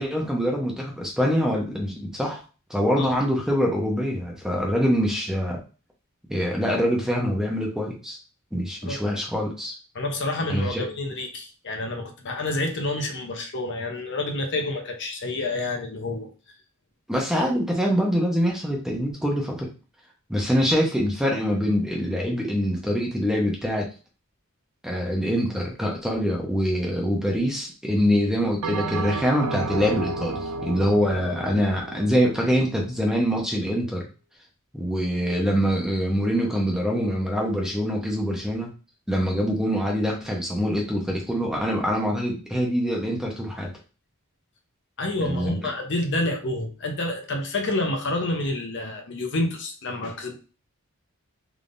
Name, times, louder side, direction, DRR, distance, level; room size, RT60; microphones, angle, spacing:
voice 1, 0.0-2.4 2.7-5.6 6.3-8.2 8.5-9.7 10.5-10.9 17.1-19.7 20.3-23.9 24.8-34.0 34.7-38.7 39.1-43.7 45.2-45.6, equal, ahead, -1 dB, 0.8 m, -24 dB
voice 2, 9.9-16.3 45.0-50.3, left 2 dB, 55° left, 3 dB, 0.8 m, -28 dB
Bell, 28.6-33.2, right 4 dB, 80° right, 0.5 m, -32 dB
3.6 x 3.5 x 2.5 m, 0.33 s
head